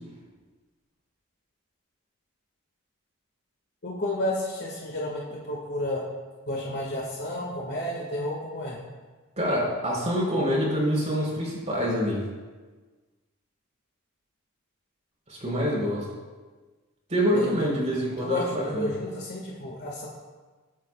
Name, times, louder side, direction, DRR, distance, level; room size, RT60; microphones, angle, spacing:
voice 1, 3.8-6.0 6.5-8.8 17.3-17.7 18.2-20.1, left 1 dB, 50° left, -3 dB, 1.9 m, -31 dB
voice 2, 9.4-12.2 15.3-16.1 17.1-18.9, equal, 30° right, -3 dB, 4.1 m, -26 dB
22.5 x 9.1 x 2.4 m, 1.4 s
head